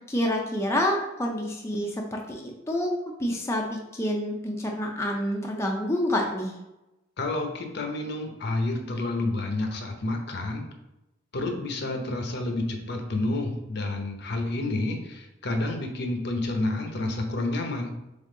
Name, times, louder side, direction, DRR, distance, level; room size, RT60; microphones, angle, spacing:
voice 1, 0.1-2.9 3.2-6.5, left 1 dB, 15° left, 0 dB, 0.4 m, -28 dB
voice 2, 7.2-10.6 11.3-17.9, left 2 dB, 60° left, 4 dB, 0.7 m, -29 dB
3.6 x 3.6 x 3.7 m, 0.92 s
head